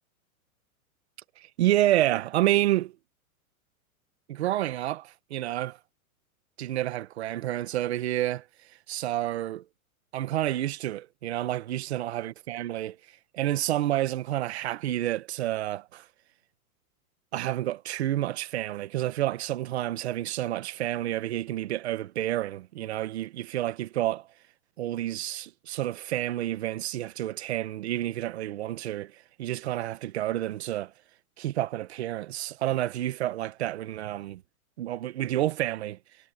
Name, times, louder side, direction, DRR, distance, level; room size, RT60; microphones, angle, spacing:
voice 1, 1.4-2.9 4.3-5.8 6.6-8.4 8.9-9.6 10.1-12.9 13.3-16.0 17.3-24.3 24.8-29.1 29.4-30.9 31.4-34.4 34.8-36.0, right 14 dB, 45° right, 1.3 m, -29 dB
supercardioid pair, 180°, 44 cm